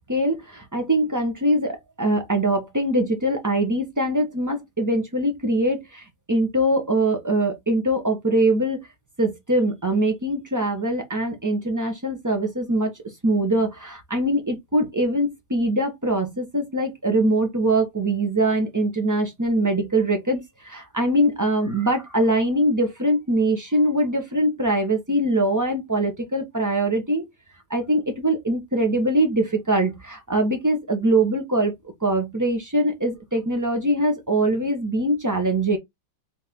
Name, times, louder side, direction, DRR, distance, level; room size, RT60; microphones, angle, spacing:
voice 1, 0.1-6.0 6.3-8.8 9.2-12.9 13.2-27.3 27.7-31.7 32.0-35.8, right 1 dB, 15° right, 0.7 m, -22 dB
4.4 x 2.9 x 3.6 m
omnidirectional pair, 1.9 m